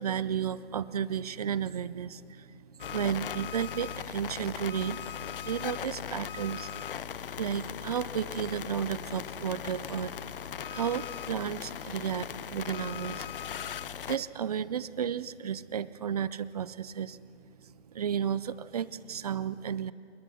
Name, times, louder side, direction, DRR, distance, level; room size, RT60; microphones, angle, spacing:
voice 1, 0.0-2.6 2.8-5.0 5.4-6.7 7.4-10.4 10.7-13.3 13.6-17.2 17.9-19.9, right 8 dB, 35° right, 18 dB, 0.5 m, -33 dB
sound 1, 2.8-14.2, left 9 dB, 50° left, 0.6 m, -39 dB
26.0 x 21.5 x 6.4 m, 2.5 s
hypercardioid pair, 145°, 35 cm